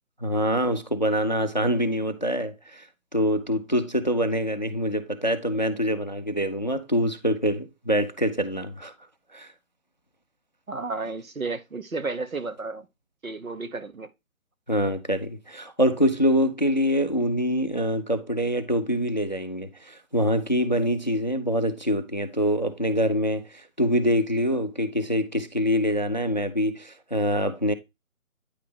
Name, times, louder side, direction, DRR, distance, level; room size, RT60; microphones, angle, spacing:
voice 1, 0.2-2.9 3.1-8.9 9.3-9.5 14.7-27.7, equal, 35° left, 0.4 m, -25 dB
voice 2, 10.7-12.9 13.2-14.1, right 3 dB, 80° right, 1.0 m, -32 dB
9.3 x 3.2 x 3.4 m
figure-of-eight pair, 150°, 41 cm